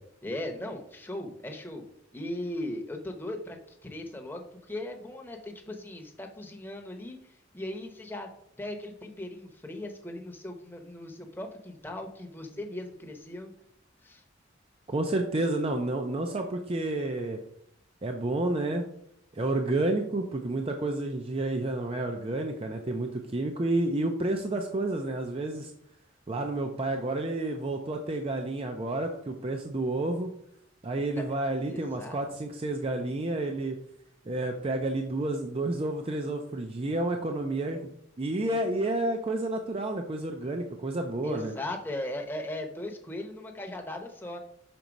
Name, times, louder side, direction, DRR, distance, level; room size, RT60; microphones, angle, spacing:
voice 1, 0.2-1.8 2.1-8.3 8.6-13.5 14.0-14.2 31.2-31.3 31.6-32.2 38.5-38.6 41.2-44.4, left 1 dB, 10° left, 2 dB, 0.9 m, -38 dB
voice 2, 14.9-17.4 18.0-18.8 19.3-25.7 26.3-30.3 30.8-33.8 34.3-37.9 38.2-41.5, right 2 dB, 30° right, 4 dB, 0.5 m, -30 dB
6.0 x 4.0 x 5.2 m, 0.72 s
head